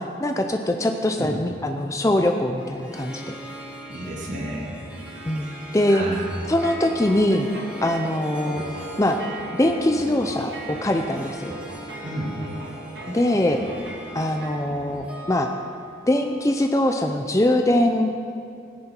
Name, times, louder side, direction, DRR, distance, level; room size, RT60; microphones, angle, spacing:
voice 1, 0.0-3.3 5.3-6.0 6.5-7.5 7.8-8.6 9.0-9.2 9.6-11.5 13.1-13.6 14.1-15.5 16.1-18.1, left 1 dB, 15° left, 5 dB, 0.5 m, -22 dB
Harp, 2.6-17.1, equal, 5° right, 1.7 m, -40 dB
voice 2, 3.9-4.9 5.9-6.3 12.0-12.3, right 1 dB, 40° right, -4 dB, 2.2 m, -31 dB
sound 1, 6.2-14.9, right 2 dB, 65° right, 1.8 m, -39 dB
17.0 x 10.5 x 4.5 m, 2.5 s
head